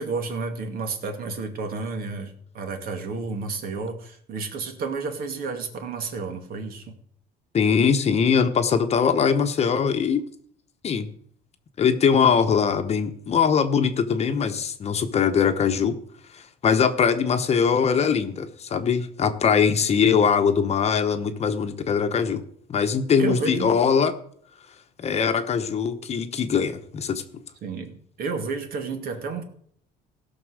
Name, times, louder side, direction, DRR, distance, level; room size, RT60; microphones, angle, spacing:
voice 1, 0.0-6.9 23.2-23.8 27.6-29.4, right 4 dB, 60° right, 6 dB, 2.2 m, -31 dB
voice 2, 7.5-10.2 10.8-11.1 11.8-16.0 16.3-22.4 22.7-24.1 25.0-27.2, left 6 dB, 40° left, 8 dB, 1.1 m, -21 dB
16.5 x 6.0 x 6.4 m, 0.62 s
cardioid pair, 130°, 17 cm